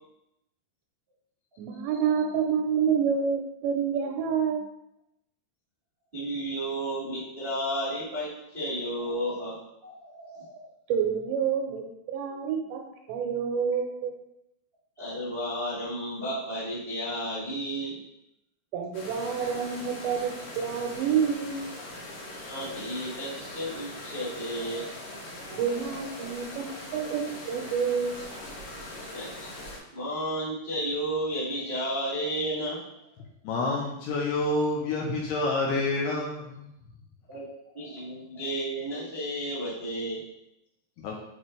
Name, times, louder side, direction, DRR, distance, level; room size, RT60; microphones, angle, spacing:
voice 1, 1.6-4.6 10.9-11.8 12.1-12.8 13.1-14.1 18.7-21.7 25.5-27.2 27.5-28.2, right 7 dB, 85° right, 2 dB, 2.8 m, -28 dB
voice 2, 6.1-10.7 15.0-18.0 22.3-25.2 25.5-25.6 26.2-26.3 29.1-29.5 29.9-32.8 37.3-37.4 37.7-40.2, equal, 50° right, -9 dB, 0.6 m, -33 dB
sound 1, 18.9-29.8, left 1 dB, 60° left, 2.3 m, -41 dB
voice 3, 33.4-36.7 37.5-37.6 41.0-41.2, left 2 dB, 80° left, -1 dB, 2.5 m, -28 dB
7.3 x 4.6 x 3.3 m, 0.83 s
omnidirectional pair, 5.4 m